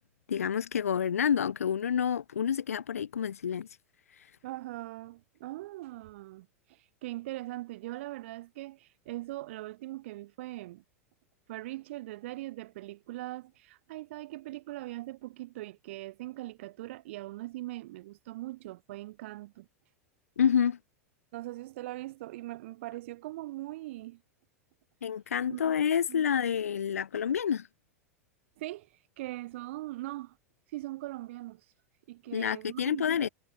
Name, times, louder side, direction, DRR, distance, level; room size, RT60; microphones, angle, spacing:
voice 1, 0.3-3.7 4.2-4.3 20.4-20.8 25.0-27.7 32.3-33.3, left 8 dB, 70° left, 0.8 m, -28 dB
voice 2, 4.4-10.8 11.5-19.7 21.3-24.2 25.5-25.7 26.1-26.3 28.6-28.9 29.2-30.4 30.7-31.6 32.1-33.3, right 17 dB, 55° right, 2.0 m, -41 dB
figure-of-eight pair, 90°, 8 cm